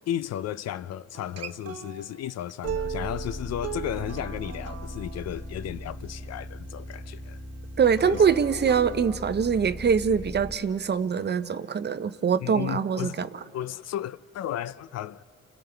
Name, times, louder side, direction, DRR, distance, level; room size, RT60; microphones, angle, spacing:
voice 1, 0.1-7.4 8.0-8.2 12.4-13.2 13.5-15.2, left 11 dB, 60° left, 0.4 m, -34 dB
Acoustic guitar, 1.1-6.3 7.9-9.2, right 9 dB, 55° right, 0.9 m, -39 dB
sound 1, 2.6-10.6, left 1 dB, 5° left, 3.4 m, -39 dB
voice 2, 7.8-13.3, right 6 dB, 35° right, 0.6 m, -23 dB
29.5 x 29.0 x 3.4 m
cardioid pair, 90°, 30 cm